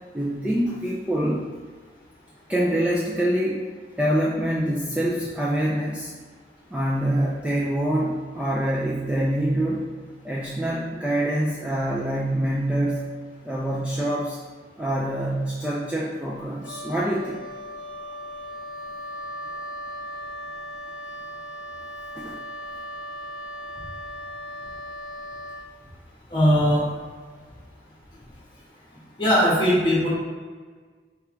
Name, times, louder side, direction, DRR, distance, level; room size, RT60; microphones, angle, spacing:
voice 1, 0.1-1.5 2.5-3.6 4.0-6.1 6.7-9.8 10.2-13.0 13.4-14.4 14.8-17.4 22.2-22.4, right 1 dB, 5° right, -5 dB, 0.3 m, -25 dB
Wind instrument woodwind instrument, 16.6-25.7, equal, 80° left, 0.4 m, -37 dB
voice 2, 26.3-26.8 29.2-30.1, equal, 25° left, -6 dB, 1.2 m, -19 dB
4.6 x 3.5 x 3.1 m, 1.5 s
head